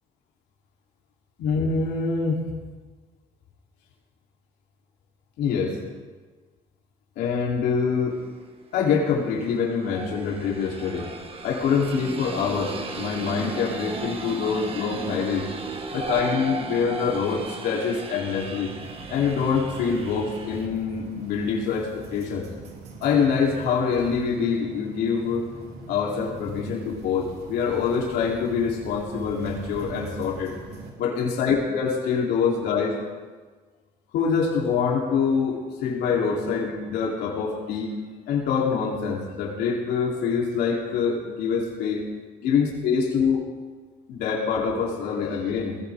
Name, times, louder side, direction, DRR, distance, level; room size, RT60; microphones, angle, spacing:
voice 1, 1.4-2.4 5.4-5.8 7.2-8.2 8.7-11.1 11.4-15.5 15.9-18.7 19.1-22.5 23.0-25.5 25.9-30.5 31.0-33.0 34.1-38.0 38.3-42.0 42.4-43.4 44.1-45.8, left 6 dB, 80° left, -3 dB, 3.6 m, -25 dB
sound 1, 8.2-8.3 9.4-20.7, right 4 dB, 35° right, 1.8 m, -35 dB
sound 2, 18.8-30.9, right 2 dB, 70° right, 3.2 m, -41 dB
20.5 x 16.0 x 3.7 m, 1.4 s
cardioid pair, 110°, 17 cm